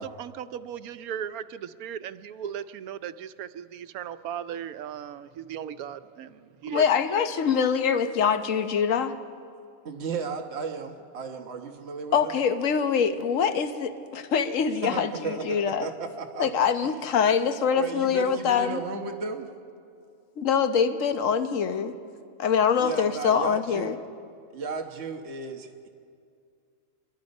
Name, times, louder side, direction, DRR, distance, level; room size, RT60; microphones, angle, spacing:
voice 1, 0.0-6.8, right 9 dB, 90° right, 12 dB, 1.2 m, -37 dB
voice 2, 6.7-9.1 12.1-15.9 16.4-18.8 20.4-21.9 22.4-23.9, left 7 dB, 65° left, 8 dB, 1.3 m, -24 dB
voice 3, 9.8-12.4 14.8-16.7 17.7-19.5 22.8-24.0 24.5-25.9, right 4 dB, 50° right, 3 dB, 1.4 m, -34 dB
27.0 x 22.5 x 5.3 m, 2.4 s
omnidirectional pair, 1.5 m